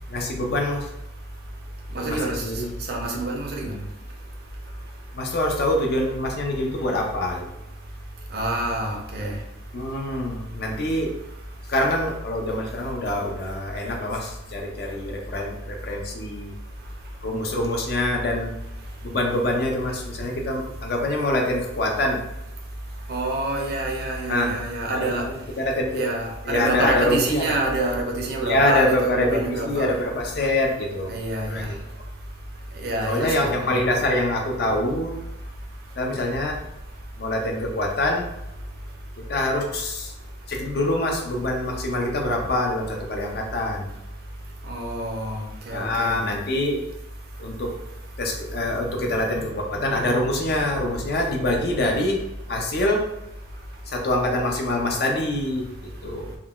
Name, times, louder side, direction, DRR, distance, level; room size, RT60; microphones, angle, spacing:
voice 1, 0.1-0.9 1.9-2.7 5.1-7.5 9.7-11.2 11.7-16.5 17.2-18.5 19.0-22.2 24.3-24.6 24.9-26.1 26.4-27.5 28.4-31.2 31.4-31.8 33.0-35.2 36.0-36.6 37.2-38.3 39.2-40.1 40.5-43.9 45.7-46.8 47.4-47.8 48.2-52.2 52.5-53.1 53.9-56.4, left 1 dB, 50° left, 1 dB, 0.4 m, -25 dB
voice 2, 1.9-2.4 2.9-3.7 8.3-9.3 23.1-25.2 25.9-29.9 31.1-31.7 32.8-33.8 44.7-46.2, right 2 dB, 50° right, 1 dB, 0.5 m, -27 dB
3.6 x 2.2 x 2.3 m, 0.90 s
head